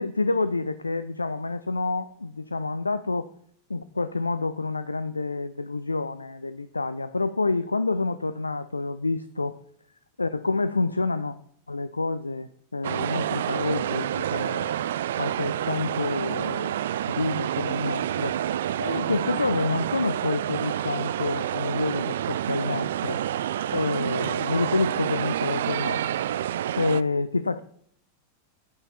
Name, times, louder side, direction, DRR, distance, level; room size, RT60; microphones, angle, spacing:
voice 1, 0.0-3.3 3.7-9.6 10.2-11.4 11.7-14.8 15.2-18.4 18.8-23.2 23.7-26.1 26.7-27.6, left 3 dB, 80° left, 13 dB, 0.4 m, -28 dB
sound 1, 12.8-27.0, right 11 dB, 60° right, 0.3 m, -28 dB
9.7 x 8.7 x 4.2 m, 0.63 s
figure-of-eight pair, 90°, 0 cm